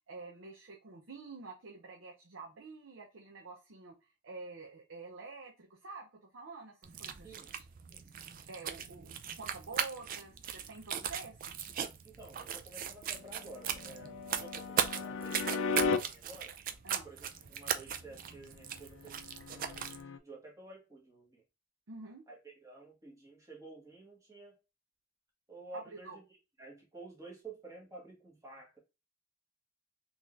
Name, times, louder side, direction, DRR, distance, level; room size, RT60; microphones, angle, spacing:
voice 1, 0.1-7.6 8.5-11.6 16.8-17.1 21.9-22.2 25.7-26.2, right 3 dB, 80° right, 0.7 m, -48 dB
sound 1, 6.8-20.0, right 8 dB, 45° right, 0.4 m, -38 dB
voice 2, 12.0-16.6 17.0-19.2 19.5-21.4 22.3-24.6 25.5-28.8, right 2 dB, 15° right, 1.4 m, -51 dB
sound 2, 13.1-16.0 18.9-20.2, left 4 dB, 85° left, 0.4 m, -36 dB
3.7 x 3.0 x 2.5 m
head